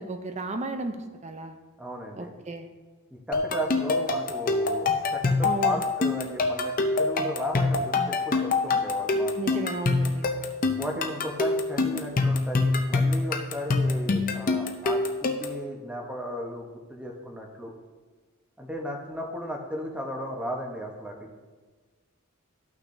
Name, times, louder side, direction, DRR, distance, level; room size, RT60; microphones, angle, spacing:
voice 1, 0.0-1.6 2.1-2.7 5.4-5.8 9.4-10.3, right 2 dB, 30° right, 8 dB, 0.6 m, -33 dB
voice 2, 1.8-2.4 3.1-9.6 10.8-17.7 18.6-21.4, equal, 5° right, 0 dB, 1.0 m, -35 dB
sound 1, 3.3-15.6, left 3 dB, 40° left, 0.6 m, -25 dB
13.5 x 5.9 x 2.7 m, 1.4 s
head